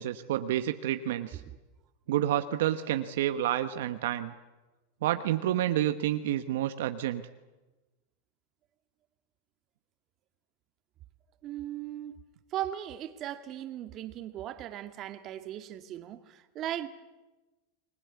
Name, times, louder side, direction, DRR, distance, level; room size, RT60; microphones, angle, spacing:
voice 1, 0.0-1.4 2.1-4.3 5.0-7.2, right 12 dB, 75° right, 1.2 m, -29 dB
voice 2, 11.4-12.2 12.5-16.9, right 12 dB, 40° right, 2.1 m, -38 dB
29.0 x 21.5 x 8.4 m
supercardioid pair, 125°, 0 cm